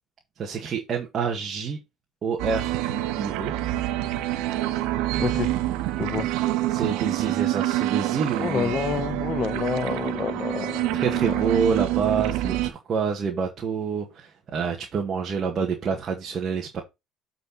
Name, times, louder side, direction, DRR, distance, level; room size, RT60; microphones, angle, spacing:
voice 1, 0.4-1.8 2.2-3.5 6.7-8.8 10.9-16.8, right 6 dB, 35° right, 1.9 m, -27 dB
sound 1, 2.4-12.7, right 15 dB, 80° right, 1.1 m, -27 dB
voice 2, 5.2-5.5 6.0-6.3 8.4-11.5, left 7 dB, 35° left, 0.5 m, -29 dB
9.3 x 4.5 x 4.3 m
cardioid pair, 140°, 0 cm